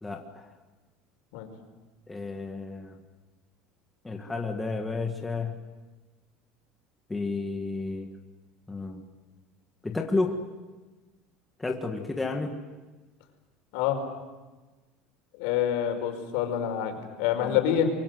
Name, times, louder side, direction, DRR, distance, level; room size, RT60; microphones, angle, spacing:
voice 1, 0.0-0.4 2.1-3.0 4.0-5.5 7.1-8.1 8.7-9.0 9.8-10.4 11.6-12.5 17.4-17.6, left 3 dB, 10° left, 2 dB, 1.6 m, -31 dB
voice 2, 15.4-16.9 17.2-17.9, left 10 dB, 70° left, 5 dB, 4.9 m, -26 dB
24.5 x 24.0 x 7.9 m, 1.2 s
cardioid pair, 165°, 0 cm